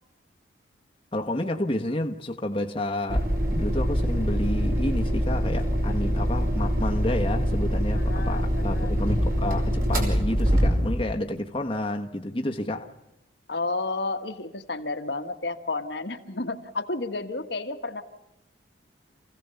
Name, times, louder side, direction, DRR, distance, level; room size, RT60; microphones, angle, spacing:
voice 1, 1.1-12.9, left 1 dB, 30° left, 1.3 m, -30 dB
sound 1, 3.1-11.1, equal, 50° right, 5.4 m, -24 dB
voice 2, 7.9-9.0 13.5-18.0, left 3 dB, 60° left, 1.5 m, -31 dB
28.5 x 16.5 x 7.0 m
head